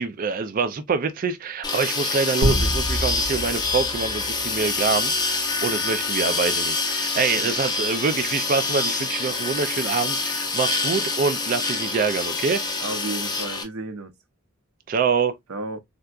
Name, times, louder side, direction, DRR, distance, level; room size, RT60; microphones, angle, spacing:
voice 1, 0.0-12.6 14.9-15.3, right 5 dB, 40° right, 0.3 m, -25 dB
sound 1, 1.6-13.6, left 3 dB, 20° left, 0.7 m, -26 dB
sound 2, 2.4-5.2, equal, 70° right, 1.4 m, -27 dB
voice 2, 7.1-7.5 12.8-14.1 15.5-15.8, right 2 dB, 90° right, 0.7 m, -33 dB
3.8 x 2.2 x 2.3 m
head